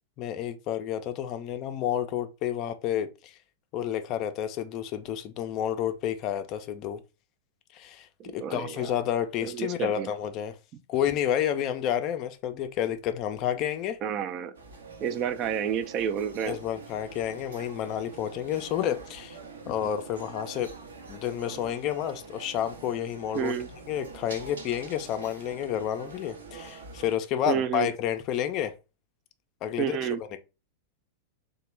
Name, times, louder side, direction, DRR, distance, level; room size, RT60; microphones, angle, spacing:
voice 1, 0.2-3.4 3.7-7.0 7.7-8.1 8.3-10.5 10.9-14.0 16.5-19.4 19.7-20.7 21.1-23.5 23.9-28.7 29.6-30.0, left 10 dB, 45° left, 0.4 m, -30 dB
voice 2, 8.2-8.9 9.4-10.1 14.0-14.5 15.0-16.6 23.3-23.7 27.5-27.9 29.8-30.2, right 8 dB, 40° right, 0.4 m, -30 dB
sound 1, 14.5-27.2, right 4 dB, 75° right, 0.7 m, -45 dB
2.9 x 2.1 x 3.1 m
figure-of-eight pair, 95°, 0 cm